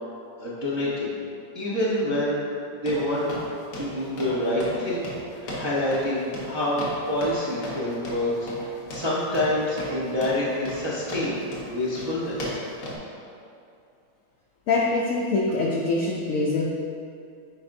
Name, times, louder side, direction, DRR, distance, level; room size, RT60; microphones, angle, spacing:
voice 1, 0.4-1.2 1.5-2.5 2.8-3.4 3.8-5.1 5.4-8.5 8.9-12.6 13.2-13.3, left 1 dB, 30° right, -8 dB, 0.5 m, -27 dB
sound 1, 2.9-13.0, equal, 60° left, 1.6 m, -37 dB
voice 2, 14.7-16.7, left 3 dB, 80° left, -1 dB, 0.7 m, -24 dB
8.4 x 4.9 x 2.6 m, 2.5 s
omnidirectional pair, 2.0 m